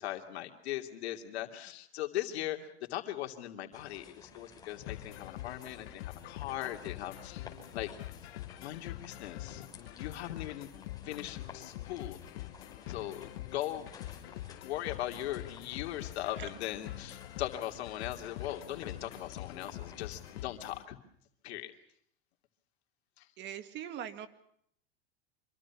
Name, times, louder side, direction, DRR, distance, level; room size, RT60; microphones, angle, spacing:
voice 1, 0.0-7.5 7.7-7.9 8.6-10.7 11.0-12.2 12.9-21.0 21.4-21.7 23.2-23.3, left 13 dB, 85° left, 5 dB, 2.8 m, -39 dB
sound 1, 3.7-20.4, left 5 dB, 10° left, 5.4 m, -54 dB
sound 2, 4.9-20.8, left 15 dB, 70° left, 1.2 m, -45 dB
voice 2, 23.4-24.3, right 10 dB, 35° right, 11 dB, 2.1 m, -42 dB
26.0 x 25.0 x 6.1 m, 0.69 s
supercardioid pair, 155°, 32 cm